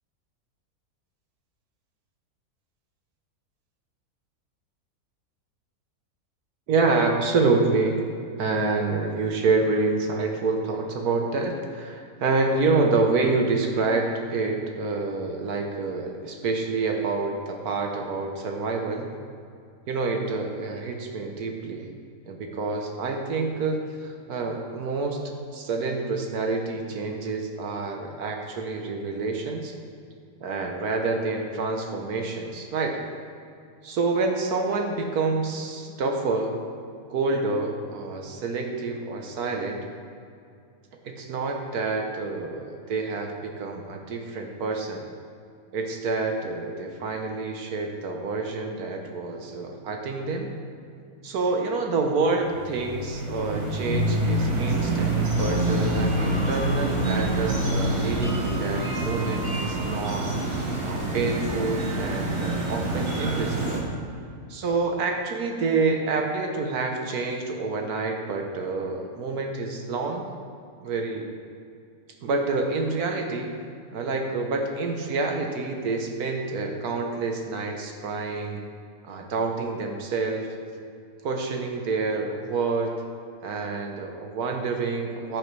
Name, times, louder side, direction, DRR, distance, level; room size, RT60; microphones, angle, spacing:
voice 1, 6.7-8.0 8.4-19.1 19.9-21.9 22.3-29.7 30.4-33.0 33.8-36.5 37.1-39.9 41.0-45.1 45.7-50.5 51.2-60.3 60.8-63.8 64.5-70.2 70.8-71.3 72.2-73.5 73.9-78.6 79.0-80.5 81.2-82.9 83.4-85.4, right 3 dB, 75° right, 2 dB, 1.4 m, -27 dB
sound 1, 52.2-63.8, right 1 dB, 45° right, 2.0 m, -26 dB
14.5 x 7.7 x 3.2 m, 2.4 s
omnidirectional pair, 1.6 m